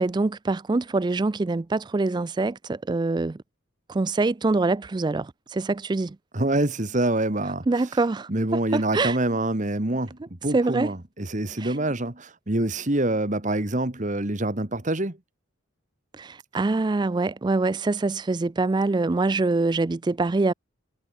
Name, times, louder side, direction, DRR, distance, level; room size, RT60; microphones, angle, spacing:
voice 1, 0.0-3.4 3.9-6.2 7.7-9.2 10.5-10.9 11.6-11.8 16.1-20.5, right 3 dB, 20° right, 0.3 m, -24 dB
voice 2, 6.3-7.7 8.3-15.2, right 1 dB, 35° right, 1.8 m, -26 dB
head